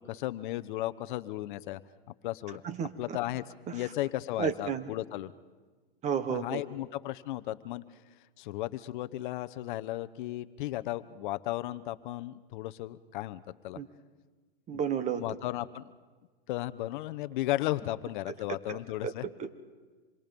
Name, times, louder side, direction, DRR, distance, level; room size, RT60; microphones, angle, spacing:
voice 1, 0.0-1.8 2.2-2.6 3.0-3.4 3.7-5.3 6.3-7.8 8.4-13.8 14.7-14.8 15.2-16.0 16.5-19.3, left 16 dB, 50° left, 13 dB, 0.9 m, -35 dB
voice 2, 2.6-3.2 4.4-4.9 6.0-6.6 13.8-13.9 14.7-15.2 18.7-18.8 19.0-19.1 19.4-19.5, right 7 dB, 25° right, 12 dB, 1.3 m, -32 dB
26.5 x 22.0 x 5.3 m, 1.4 s
hypercardioid pair, 135°, 31 cm